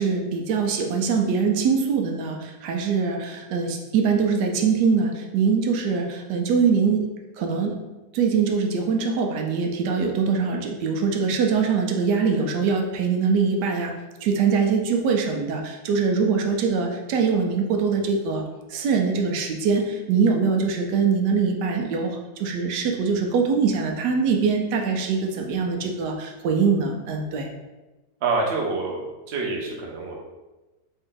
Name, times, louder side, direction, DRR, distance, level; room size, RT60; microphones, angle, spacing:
voice 1, 0.0-7.1 7.4-7.8 8.1-13.9 14.2-18.4 18.7-27.5, right 5 dB, 85° right, 2 dB, 1.2 m, -23 dB
voice 2, 28.2-30.1, right 3 dB, 50° right, -2 dB, 0.9 m, -27 dB
4.3 x 2.6 x 3.8 m, 1.1 s
omnidirectional pair, 1.8 m